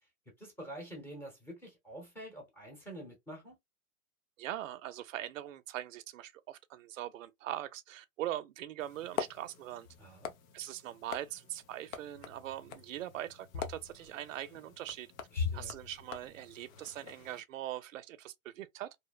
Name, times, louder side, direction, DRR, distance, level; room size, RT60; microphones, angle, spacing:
voice 1, 0.4-3.6 10.0-10.3 15.3-15.8, right 1 dB, 5° left, 0.9 m, -47 dB
voice 2, 4.4-9.9 10.5-15.1 15.5-19.0, right 13 dB, 65° right, 0.5 m, -41 dB
sound 1, 8.8-17.4, left 6 dB, 65° left, 0.7 m, -43 dB
2.7 x 2.0 x 2.2 m
hypercardioid pair, 135°, 43 cm